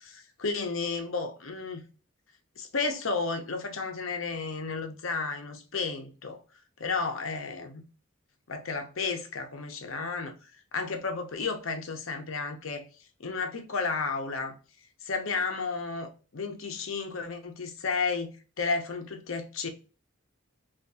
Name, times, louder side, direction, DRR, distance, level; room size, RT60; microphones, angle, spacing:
voice 1, 0.0-1.8 2.6-6.4 6.8-7.8 8.5-10.3 10.7-12.9 13.2-14.5 15.0-18.3 18.6-19.7, left 4 dB, 70° left, 0.7 m, -32 dB
3.4 x 2.5 x 2.6 m
head